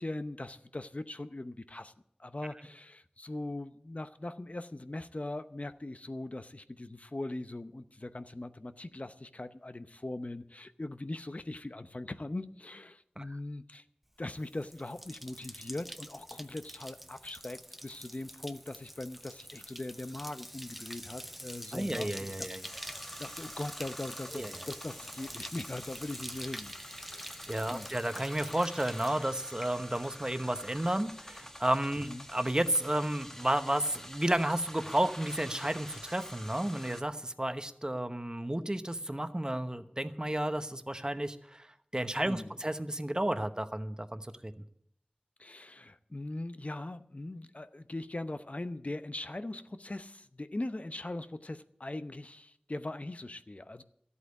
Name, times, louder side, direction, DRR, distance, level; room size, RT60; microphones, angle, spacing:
voice 1, 0.0-1.9 2.2-13.8 14.2-22.5 22.9-26.7 27.1-27.9 32.0-32.3 42.2-42.6 45.4-53.8, left 2 dB, 50° left, 11 dB, 0.8 m, -40 dB
Bathtub (filling or washing), 14.2-30.3 30.6-31.1, equal, 5° right, 0.7 m, -46 dB
voice 2, 21.7-22.6 24.3-24.5 27.5-41.6 41.9-44.5, right 1 dB, 25° right, 9 dB, 1.0 m, -32 dB
sound 1, 22.6-37.0, equal, 15° left, 1.3 m, -47 dB
13.5 x 8.4 x 8.3 m, 0.72 s
wide cardioid pair, 45°, 3 cm